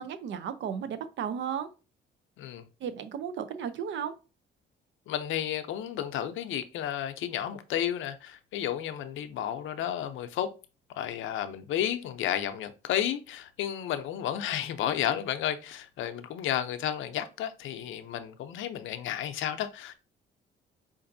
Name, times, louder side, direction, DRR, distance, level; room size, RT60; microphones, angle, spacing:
voice 1, 0.0-1.7 2.8-4.1, right 8 dB, 70° right, 0.6 m, -34 dB
voice 2, 5.1-10.5 11.0-19.9, left 10 dB, 80° left, 0.5 m, -32 dB
4.9 x 2.6 x 2.6 m
cardioid pair, 90°, 20 cm